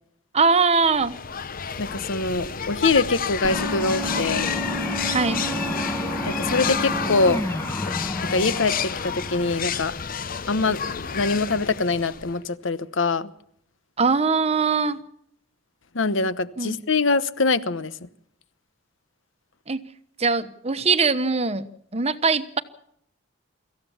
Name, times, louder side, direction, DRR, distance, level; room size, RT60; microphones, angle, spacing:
voice 1, 0.3-1.2 5.0-5.4 14.0-15.0 16.6-16.8 19.7-19.8 20.2-21.7 21.9-22.6, right 4 dB, 30° right, 1.1 m, -21 dB
sound 1, 0.8-12.5, left 7 dB, 45° left, 0.7 m, -30 dB
voice 2, 1.8-4.5 6.2-7.4 8.3-9.9 10.5-10.8 11.1-13.3 15.9-17.9, left 3 dB, 70° left, 1.1 m, -23 dB
sound 2, 3.4-9.8, equal, 10° left, 1.4 m, -30 dB
25.0 x 15.0 x 7.2 m
head